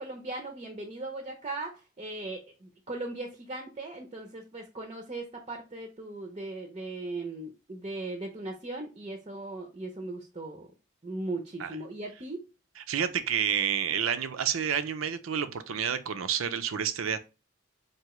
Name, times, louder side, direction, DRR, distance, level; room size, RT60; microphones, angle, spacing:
voice 1, 0.0-10.7 11.0-12.4, right 2 dB, 30° right, 0.5 m, -38 dB
voice 2, 12.9-17.2, right 8 dB, 75° right, 0.5 m, -29 dB
4.7 x 2.7 x 3.0 m
head